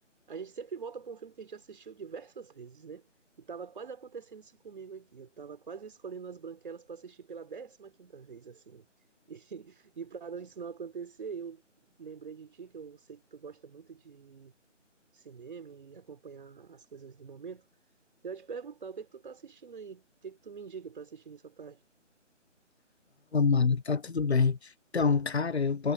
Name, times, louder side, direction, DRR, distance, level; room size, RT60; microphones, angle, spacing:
voice 1, 0.3-3.0 3.4-8.9 9.3-11.6 12.0-14.5 15.1-17.7 18.2-21.8, right 6 dB, 40° right, 4.5 m, -44 dB
voice 2, 23.3-25.9, left 5 dB, 55° left, 1.2 m, -26 dB
figure-of-eight pair, 155°, 38 cm